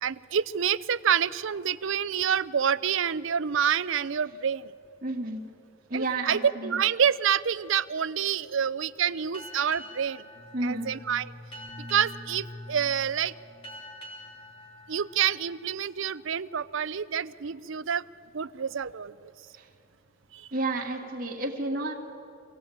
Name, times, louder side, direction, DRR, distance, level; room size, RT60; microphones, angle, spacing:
voice 1, 0.0-4.7 5.9-10.2 10.6-11.3 11.9-13.3 14.9-18.1 18.3-19.3 20.3-20.5, right 8 dB, 60° right, 15 dB, 0.5 m, -27 dB
voice 2, 5.0-5.4 5.9-6.8 10.5-10.9 19.6-19.7 20.5-21.9, right 2 dB, 40° right, 0 dB, 2.5 m, -31 dB
Boat Water vehicle, 9.3-16.4, equal, 25° left, 3.0 m, -47 dB
sound 1, 10.3-15.5, left 1 dB, 25° right, 2.7 m, -47 dB
26.0 x 17.0 x 8.8 m, 2.6 s
head